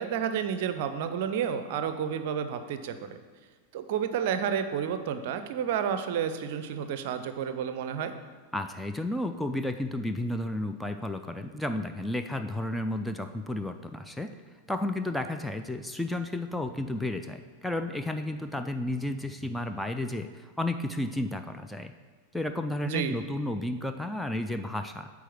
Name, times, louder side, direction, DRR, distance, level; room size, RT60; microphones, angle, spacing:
voice 1, 0.0-3.2 3.7-8.1 22.8-23.2, right 8 dB, 50° right, 10 dB, 0.5 m, -30 dB
voice 2, 8.5-14.4 14.7-21.9 22.3-25.1, left 1 dB, 5° left, 6 dB, 0.3 m, -32 dB
9.1 x 3.6 x 6.0 m, 1.5 s
figure-of-eight pair, 90°, 0 cm